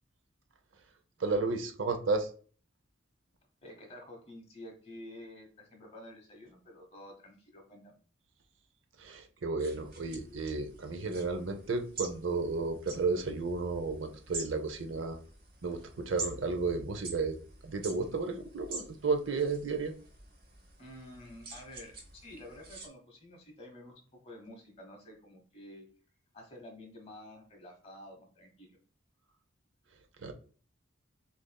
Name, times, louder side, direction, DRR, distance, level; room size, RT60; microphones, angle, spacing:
voice 1, 1.2-2.3 9.0-15.2 15.6-17.4 17.6-19.9 30.2-30.3, right 3 dB, 75° right, 6 dB, 0.6 m, -33 dB
voice 2, 3.6-8.0 20.8-25.9 26.3-28.8, left 1 dB, 30° left, 2 dB, 1.0 m, -50 dB
sound 1, 9.6-22.9, right 3 dB, 50° right, 0.9 m, -47 dB
6.3 x 2.6 x 2.2 m, 0.42 s
head